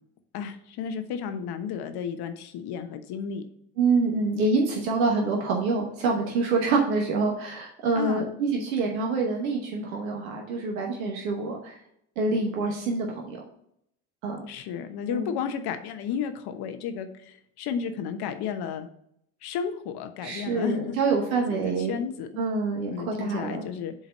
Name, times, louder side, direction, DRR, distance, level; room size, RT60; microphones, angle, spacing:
voice 1, 0.3-3.4 7.9-8.3 14.5-18.9 19.4-20.9 21.5-22.3 22.9-23.9, left 7 dB, 65° left, 8 dB, 1.1 m, -33 dB
voice 2, 3.8-11.8 12.2-13.4 14.2-14.4 15.1-15.3 20.2-22.0 22.4-23.6, right 3 dB, 85° right, 0 dB, 1.1 m, -26 dB
7.5 x 4.0 x 5.2 m, 0.72 s
hypercardioid pair, 55°, 41 cm